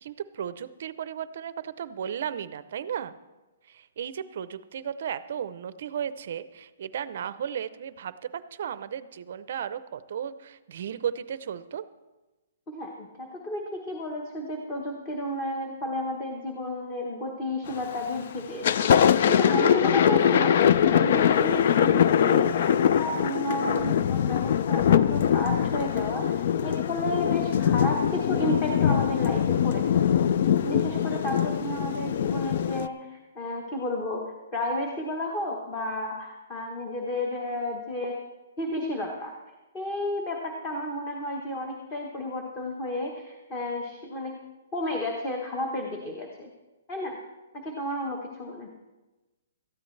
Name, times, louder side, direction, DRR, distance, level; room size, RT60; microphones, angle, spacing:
voice 1, 0.0-3.1 3.7-11.8, right 8 dB, 45° right, 14 dB, 0.6 m, -35 dB
voice 2, 12.7-30.1 30.6-38.3 38.6-39.3 39.7-44.3 44.7-46.5 46.9-47.2 47.5-48.7, left 1 dB, 15° left, 1 dB, 1.1 m, -32 dB
Thunder, 17.7-18.1 18.4-32.9, left 9 dB, 40° left, 0.3 m, -23 dB
18.5 x 13.5 x 3.3 m, 1.1 s
hypercardioid pair, 175°, 0 cm